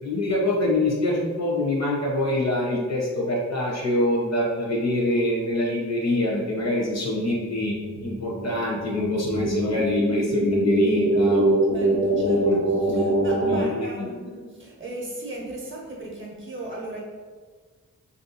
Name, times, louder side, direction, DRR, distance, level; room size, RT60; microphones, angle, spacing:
voice 1, 0.0-7.8 8.0-11.6 12.2-13.1 13.4-14.1, left 1 dB, 55° left, -3 dB, 0.8 m, -25 dB
sound 1, 7.3-13.6, right 2 dB, 80° right, 0.6 m, -24 dB
voice 2, 11.7-17.0, right 1 dB, 40° right, -2 dB, 0.7 m, -37 dB
3.1 x 2.7 x 2.7 m, 1.5 s
wide cardioid pair, 125°, 32 cm